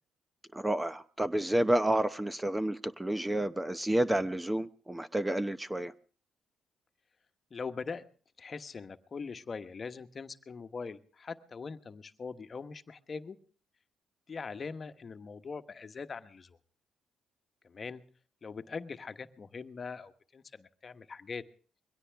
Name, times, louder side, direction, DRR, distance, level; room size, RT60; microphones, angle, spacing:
voice 1, 0.5-5.9, right 1 dB, 10° right, 0.7 m, -30 dB
voice 2, 7.5-8.0 8.4-13.4 14.3-16.6 17.6-18.0 18.4-21.4, left 5 dB, 40° left, 1.2 m, -42 dB
22.0 x 17.0 x 3.5 m
cardioid pair, 90°, 0 cm